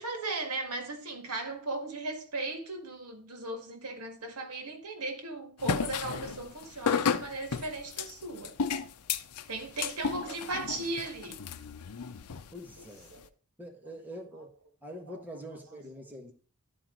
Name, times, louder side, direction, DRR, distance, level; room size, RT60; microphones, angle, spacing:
voice 1, 0.0-8.6 9.5-11.4 13.1-13.3 15.1-15.2, right 2 dB, 90° right, 1.9 m, -37 dB
sound 1, 5.6-13.3, left 6 dB, 85° left, 0.6 m, -33 dB
voice 2, 12.5-13.1 13.6-14.5 14.8-16.3, equal, 10° right, 1.6 m, -44 dB
12.0 x 4.4 x 3.8 m
head